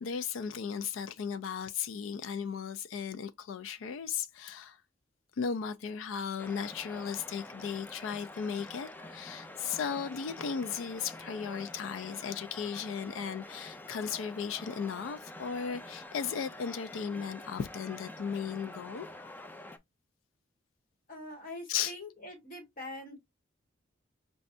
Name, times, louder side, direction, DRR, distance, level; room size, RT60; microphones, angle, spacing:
voice 1, 0.0-4.8 5.4-19.1 21.7-21.9, left 7 dB, 85° left, 0.4 m, -36 dB
sound 1, 6.4-19.8, left 2 dB, 10° left, 0.3 m, -47 dB
voice 2, 21.1-23.2, left 1 dB, 50° left, 1.5 m, -44 dB
5.1 x 2.3 x 2.5 m
head